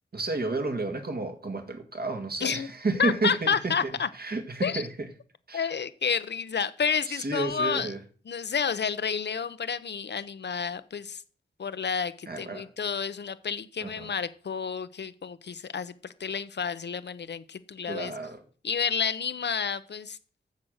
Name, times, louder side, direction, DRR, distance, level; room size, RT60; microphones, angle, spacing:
voice 1, 0.1-3.7 4.2-5.1 5.5-5.7 7.1-8.0 12.3-12.7 13.8-14.1 17.8-18.4, right 3 dB, 55° right, 2.1 m, -31 dB
voice 2, 3.0-4.1 4.6-4.8 5.5-7.9 8.3-11.2 11.6-18.1 18.6-20.2, left 6 dB, 65° left, 0.8 m, -30 dB
10.5 x 7.5 x 6.4 m
wide cardioid pair, 75°, 19 cm